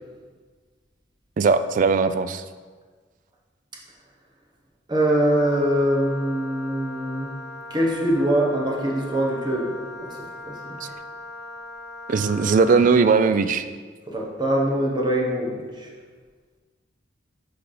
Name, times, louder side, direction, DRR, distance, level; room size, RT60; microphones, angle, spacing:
voice 1, 1.4-2.4 10.8-10.9 12.1-13.7, right 4 dB, 45° right, 11 dB, 0.3 m, -19 dB
voice 2, 4.9-7.3 7.7-10.2 10.5-10.8 14.1-15.9, right 1 dB, 25° right, -2 dB, 1.1 m, -23 dB
Wind instrument woodwind instrument, 5.3-13.3, left 2 dB, 35° left, 1.5 m, -39 dB
10.0 x 3.4 x 3.9 m, 1.5 s
head